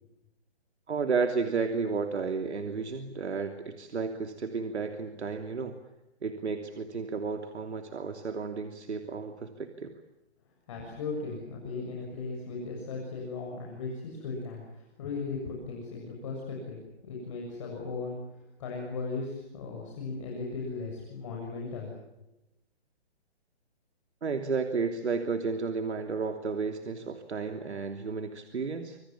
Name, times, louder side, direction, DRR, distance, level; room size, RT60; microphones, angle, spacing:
voice 1, 0.9-5.8 6.2-9.9 24.2-29.0, right 4 dB, 85° right, 6 dB, 3.1 m, -32 dB
voice 2, 10.7-21.9, left 4 dB, 30° left, -1 dB, 7.1 m, -37 dB
27.0 x 26.0 x 7.4 m, 0.93 s
hypercardioid pair, 175°, 33 cm